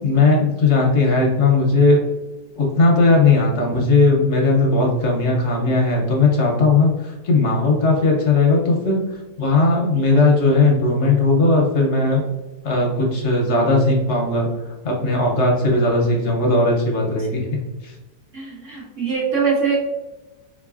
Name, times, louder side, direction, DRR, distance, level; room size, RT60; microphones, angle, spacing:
voice 1, 0.0-2.0 2.6-9.0 9.4-12.2 12.6-17.5 17.8-18.0, left 3 dB, 60° left, 0 dB, 0.7 m, -17 dB
voice 2, 18.3-19.8, right 5 dB, 50° right, -4 dB, 1.2 m, -23 dB
3.6 x 3.1 x 2.4 m, 1.1 s
omnidirectional pair, 1.9 m